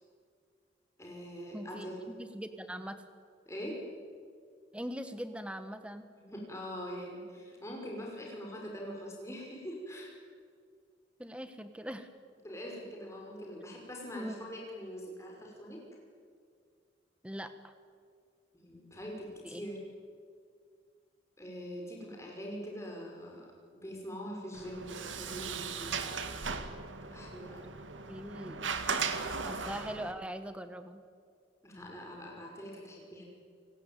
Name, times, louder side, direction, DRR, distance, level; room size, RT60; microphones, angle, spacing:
voice 1, 1.0-2.0 3.5-3.8 6.2-10.1 12.4-15.8 18.5-19.8 21.4-26.2 27.0-27.6 29.5-29.7 31.6-33.2, equal, 15° left, -1 dB, 5.9 m, -43 dB
voice 2, 1.5-3.0 4.7-6.1 11.2-12.1 14.1-14.4 17.2-17.7 19.4-19.7 28.1-28.7 29.4-31.0, equal, 5° right, 9 dB, 1.3 m, -41 dB
Sliding door, 24.5-30.1, right 5 dB, 85° right, 2.0 m, -37 dB
29.0 x 18.0 x 9.2 m, 2.1 s
head